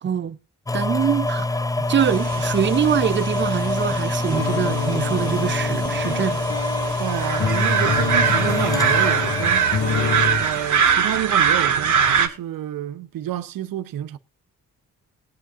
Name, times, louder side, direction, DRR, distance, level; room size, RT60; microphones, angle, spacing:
voice 1, 0.0-0.4 0.7-1.5 1.9-6.4, right 8 dB, 35° right, 0.5 m, -23 dB
sound 1, 0.7-10.7 11.3-11.4, left 2 dB, 10° left, 0.5 m, -26 dB
sound 2, 2.0-12.3, right 7 dB, 60° right, 1.8 m, -23 dB
sound 3, 4.4-10.5, left 4 dB, 50° left, 2.0 m, -27 dB
voice 2, 7.0-9.8 10.4-14.2, right 12 dB, 75° right, 0.8 m, -29 dB
20.5 x 8.5 x 2.5 m
cardioid pair, 95°, 34 cm